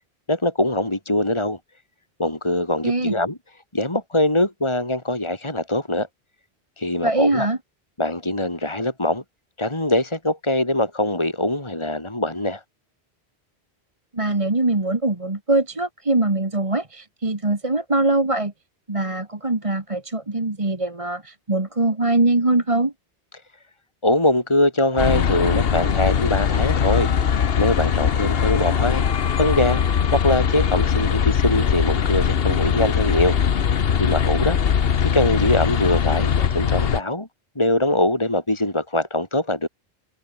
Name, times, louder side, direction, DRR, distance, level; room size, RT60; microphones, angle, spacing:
voice 1, 0.3-1.6 2.2-3.4 3.7-6.1 6.8-7.5 8.0-9.2 9.6-12.6 24.0-27.1 27.6-29.0 29.4-33.4 34.0-34.6 35.0-37.3 37.6-39.7, left 1 dB, 25° left, 3.2 m, -22 dB
voice 2, 2.8-3.1 7.0-7.6 14.1-18.5 18.9-22.9, right 2 dB, 30° right, 2.1 m, -22 dB
sound 1, 25.0-37.0, left 7 dB, 65° left, 1.2 m, -21 dB
omnidirectional pair, 1.1 m